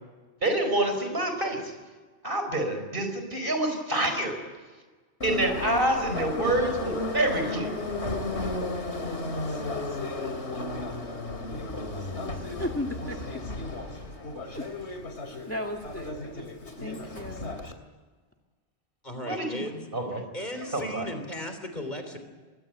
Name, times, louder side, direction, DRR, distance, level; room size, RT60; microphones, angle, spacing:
voice 1, 0.4-1.7 2.2-4.4 5.2-7.7 19.3-19.6 19.9-20.2 20.6-21.1, right 1 dB, 50° right, 5 dB, 5.3 m, -27 dB
Subway metro underground, 5.2-17.7, left 2 dB, 85° left, 3.2 m, -34 dB
voice 2, 12.4-13.4 14.4-14.8 15.4-16.5 16.8-17.6, left 1 dB, 10° left, 2 dB, 2.0 m, -36 dB
voice 3, 19.0-19.9 20.3-22.2, left 1 dB, 40° left, 7 dB, 3.7 m, -36 dB
26.0 x 21.0 x 9.3 m, 1.4 s
omnidirectional pair, 1.1 m